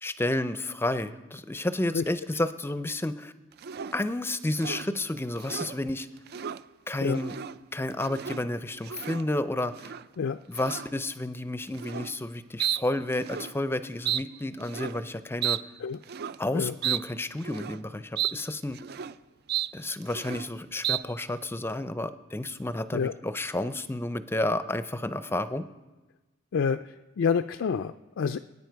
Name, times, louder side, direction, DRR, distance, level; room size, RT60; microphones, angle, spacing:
voice 1, 0.0-3.3 3.9-6.1 6.9-7.4 7.7-9.7 10.5-15.6 16.4-18.8 19.7-25.7, left 1 dB, 10° left, 12 dB, 0.5 m, -31 dB
sound 1, 3.6-4.0 4.5-4.9 5.4-5.8 6.2-6.6 7.1-7.6 7.9-8.4 8.8-9.3 9.7-10.1 10.6-10.9 11.7-12.1 12.6-12.8 13.1-13.5 14.1-14.2 14.6-15.0 15.4-15.6 16.0-16.4 16.8-17.0 17.4-17.8 18.2-18.3 18.6-19.1 19.5-19.7 20.0-20.5 20.8-21.0, right 10 dB, 55° right, 0.4 m, -32 dB
voice 2, 26.5-28.4, left 6 dB, 70° left, 10 dB, 0.4 m, -28 dB
23.5 x 9.8 x 4.6 m, 1.2 s
head